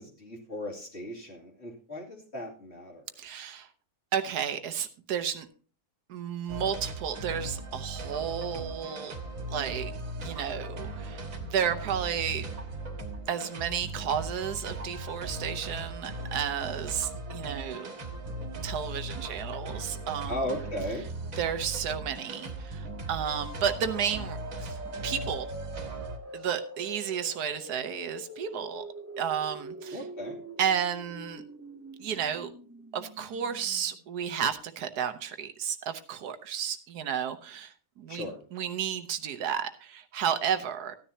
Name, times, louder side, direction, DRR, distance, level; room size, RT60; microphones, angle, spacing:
voice 1, 0.0-3.0 20.3-21.1 29.9-30.4 38.1-38.4, equal, 45° left, -1 dB, 2.7 m, -36 dB
voice 2, 3.2-3.7 4.1-5.5 6.1-9.1 9.5-9.9 10.2-12.5 13.3-17.9 18.6-20.3 21.4-24.8 25.0-25.5 26.3-28.8 29.2-30.0 30.6-31.4 32.0-32.5 32.9-41.0, right 8 dB, 85° right, 10 dB, 1.4 m, -32 dB
sound 1, 6.5-26.2, right 2 dB, 60° right, 2.0 m, -38 dB
sound 2, 22.6-34.3, right 1 dB, 25° right, 0.3 m, -44 dB
14.5 x 10.0 x 2.8 m, 0.40 s
omnidirectional pair, 1.6 m